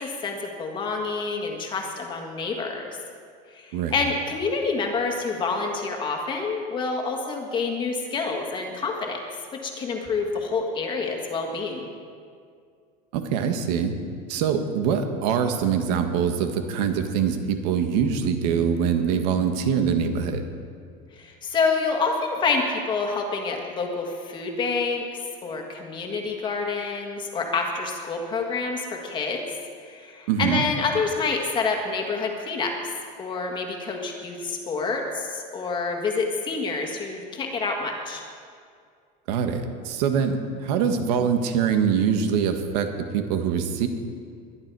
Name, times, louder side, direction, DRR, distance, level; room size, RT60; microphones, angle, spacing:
voice 1, 0.0-3.0 3.5-9.2 9.5-11.9 21.1-25.1 25.4-29.4 29.8-32.7 33.2-38.2, left 4 dB, 25° left, 2 dB, 1.6 m, -27 dB
voice 2, 13.1-14.0 14.3-20.4 30.3-30.6 39.3-43.9, right 7 dB, 85° right, 6 dB, 1.6 m, -24 dB
21.5 x 11.0 x 4.8 m, 2.2 s
cardioid pair, 175°, 20 cm